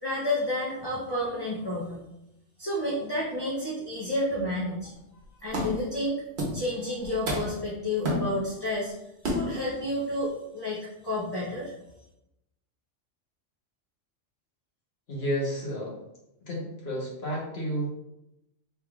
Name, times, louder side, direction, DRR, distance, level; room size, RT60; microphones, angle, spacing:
voice 1, 0.0-2.0 2.6-4.9 5.4-6.2 6.5-8.9 9.3-11.7, left 1 dB, 25° left, -7 dB, 0.6 m, -30 dB
sound 1, 5.0-5.1 5.5-5.9 6.4-6.7 7.0-7.7 8.0-8.7 9.2-9.7, equal, 60° right, 1.1 m, -30 dB
voice 2, 15.1-16.0 16.4-17.9, equal, 55° left, -4 dB, 1.3 m, -31 dB
3.5 x 3.4 x 2.3 m, 0.88 s
omnidirectional pair, 1.3 m